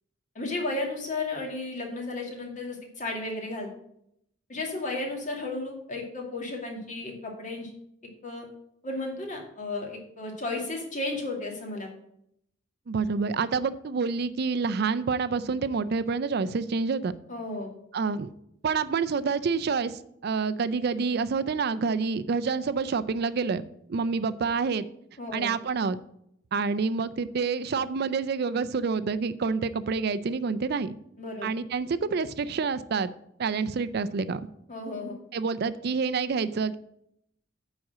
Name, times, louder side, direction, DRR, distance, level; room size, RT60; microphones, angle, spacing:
voice 1, 0.3-3.7 4.5-7.7 8.2-8.5 8.8-11.9 17.3-17.7 25.2-25.5 31.2-31.5 34.7-35.2, left 2 dB, 45° left, 1 dB, 2.3 m, -33 dB
voice 2, 12.9-17.1 17.9-18.3 18.6-23.6 23.9-24.9 25.3-26.0 26.5-31.0 31.4-33.1 33.4-34.4 35.3-36.8, right 5 dB, 60° right, 14 dB, 0.4 m, -28 dB
9.6 x 4.2 x 7.3 m, 0.74 s
head